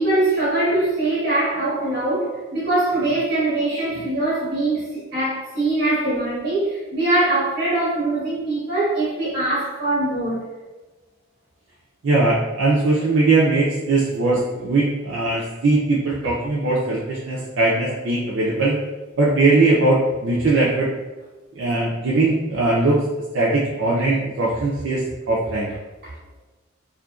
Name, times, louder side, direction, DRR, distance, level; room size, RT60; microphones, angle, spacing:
voice 1, 0.0-10.4 26.0-26.1, right 2 dB, 50° right, -10 dB, 0.9 m, -22 dB
voice 2, 12.0-18.8 19.2-20.9 21.6-23.0 23.3-25.7, right 2 dB, 65° right, -5 dB, 0.4 m, -20 dB
2.7 x 2.5 x 2.3 m, 1.2 s
head